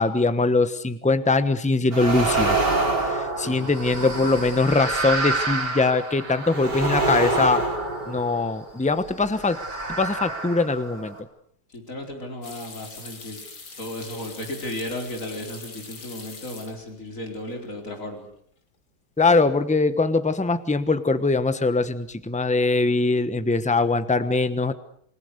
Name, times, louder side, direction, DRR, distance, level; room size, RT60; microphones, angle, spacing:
voice 1, 0.0-2.6 3.0-7.6 8.1-9.6 10.0-11.1 19.2-24.7, left 3 dB, 5° left, 12 dB, 0.9 m, -22 dB
sound 1, 1.9-8.7 9.3-11.2, right 3 dB, 85° right, 5.4 m, -26 dB
voice 2, 11.7-13.4 13.8-18.3, left 1 dB, 50° left, 2 dB, 5.0 m, -34 dB
sound 2, 12.4-17.1 17.4-18.0 18.3-18.4 21.1-21.5 21.8-22.3, left 4 dB, 90° left, 3.5 m, -43 dB
29.0 x 19.5 x 6.7 m, 0.64 s
omnidirectional pair, 1.8 m